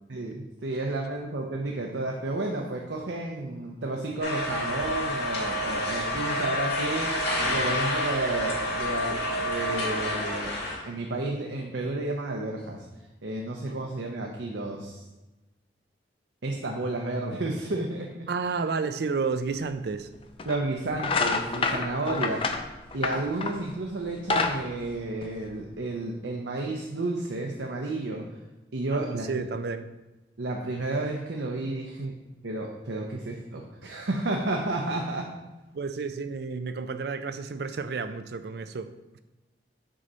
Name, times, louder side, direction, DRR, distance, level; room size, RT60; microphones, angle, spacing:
voice 1, 0.1-10.6 10.8-12.8 13.2-15.0 16.4-18.3 20.4-22.6 22.9-28.3 28.7-29.3 30.4-32.1 32.4-35.3, right 2 dB, 85° right, 1 dB, 0.7 m, -31 dB
sound 1, 4.2-10.8, left 1 dB, 60° left, 2.4 m, -29 dB
voice 2, 18.3-20.1 28.9-29.9 31.8-31.9 32.9-33.0 35.7-39.2, right 4 dB, 60° right, 11 dB, 0.4 m, -31 dB
sound 2, 19.6-19.7 20.4-20.6 20.9-23.7 24.1-25.7, left 4 dB, 30° left, 0.5 m, -28 dB
6.3 x 4.0 x 5.5 m, 1.1 s
head